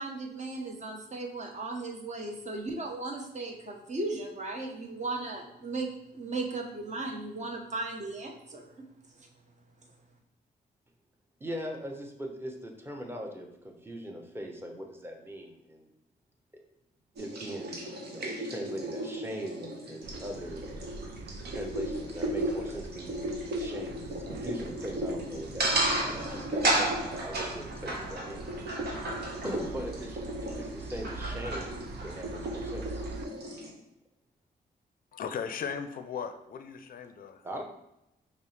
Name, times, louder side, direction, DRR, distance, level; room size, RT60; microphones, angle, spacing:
voice 1, 0.0-8.8, right 2 dB, 40° right, 1 dB, 0.9 m, -36 dB
voice 2, 11.4-15.9 17.2-17.8 18.0-20.6 21.5-28.5 29.4-31.7 32.0-33.1 37.4-37.6, equal, 15° right, 2 dB, 0.8 m, -40 dB
sound 1, 17.2-33.7, right 1 dB, 70° right, 0.9 m, -34 dB
sound 2, 20.0-33.3, right 3 dB, 85° right, 0.4 m, -44 dB
voice 3, 35.1-37.4, left 7 dB, 55° left, 9 dB, 0.4 m, -37 dB
5.2 x 2.1 x 3.2 m, 0.87 s
cardioid pair, 65°, 18 cm